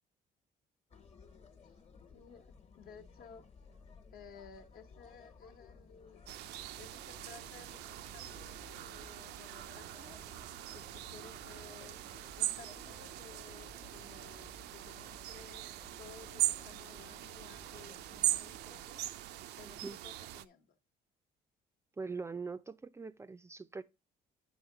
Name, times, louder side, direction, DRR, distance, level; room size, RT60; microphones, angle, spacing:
sound 1, 0.9-18.9, left 5 dB, 35° left, 1.2 m, -58 dB
voice 1, 2.1-3.4 4.1-6.3 6.8-10.2 10.7-12.0 12.4-15.6 16.0-19.0 19.6-20.8, left 6 dB, 60° left, 1.1 m, -56 dB
sound 2, 6.3-20.4, right 14 dB, 80° right, 0.4 m, -40 dB
voice 2, 19.6-20.0 22.0-23.8, right 4 dB, 15° right, 0.4 m, -42 dB
8.8 x 3.7 x 4.7 m
cardioid pair, 110°, 17 cm